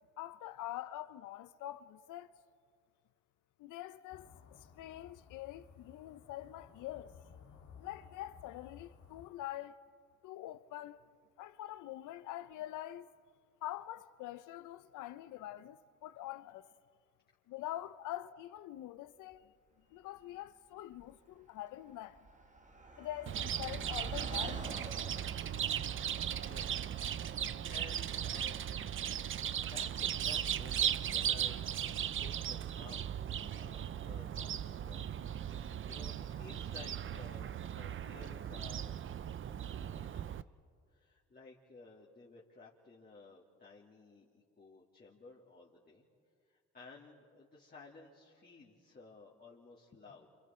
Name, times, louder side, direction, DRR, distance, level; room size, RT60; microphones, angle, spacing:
voice 1, 0.2-2.3 3.6-7.1 7.8-9.8 10.2-11.1 11.4-13.1 13.6-16.7 17.5-19.5 19.9-22.3 23.0-24.7, left 14 dB, 90° left, 0.7 m, -45 dB
sound 1, 4.1-9.3, left 7 dB, 70° left, 1.9 m, -57 dB
Car passing by, 19.3-19.4 20.2-20.5 20.7-31.1, right 2 dB, 25° right, 1.6 m, -51 dB
Chirp tweet, 23.3-40.4, right 9 dB, 40° right, 0.5 m, -37 dB
voice 2, 26.5-28.6 29.5-31.9 32.2-33.1 33.5-39.0 39.4-40.4 40.9-46.1 46.5-50.3, left 3 dB, 30° left, 2.6 m, -56 dB
29.5 x 27.5 x 4.4 m
cardioid pair, 90°, 30 cm